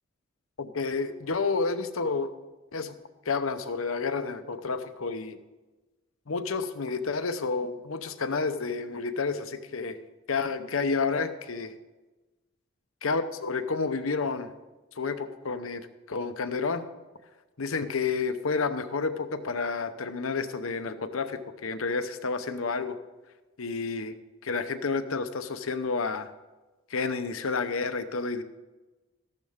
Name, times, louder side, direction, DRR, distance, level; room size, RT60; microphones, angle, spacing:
voice 1, 0.6-2.3 2.7-3.0 3.3-5.4 6.3-10.0 10.3-11.7 13.0-14.5 15.0-16.8 17.6-23.0 23.6-24.1 24.4-26.3 26.9-28.4, left 4 dB, 80° left, 10 dB, 0.8 m, -30 dB
14.5 x 12.0 x 3.6 m, 1.2 s
head